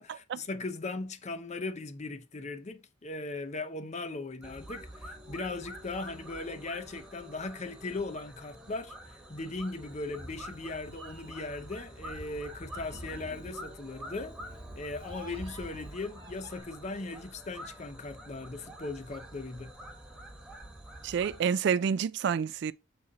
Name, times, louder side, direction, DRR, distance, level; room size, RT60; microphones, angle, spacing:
voice 1, 0.0-14.4 14.7-19.7, left 3 dB, 35° left, 0.6 m, -38 dB
sound 1, 4.4-21.4, equal, 5° right, 1.2 m, -47 dB
Meow, 9.9-16.6, right 1 dB, 25° right, 1.1 m, -47 dB
voice 2, 21.0-22.7, right 7 dB, 60° right, 0.3 m, -28 dB
6.4 x 4.1 x 3.5 m
head